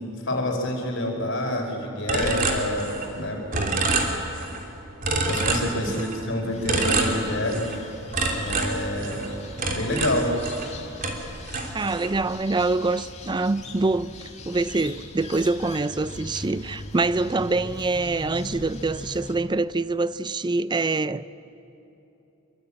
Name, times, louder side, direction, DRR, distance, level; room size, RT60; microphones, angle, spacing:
voice 1, 0.2-3.7 5.1-7.7 8.3-9.2 9.7-10.3, left 1 dB, 60° left, 4.9 m, -27 dB
sound 1, 2.1-3.2 3.5-4.6 5.0-6.2 6.7-7.8 8.1-10.7 11.0-12.2, right 3 dB, 40° right, 3.1 m, -27 dB
sound 2, 6.5-19.3, left 2 dB, 30° left, 2.6 m, -40 dB
voice 2, 11.7-21.3, right 3 dB, 20° right, 0.5 m, -25 dB
25.0 x 23.5 x 8.8 m
head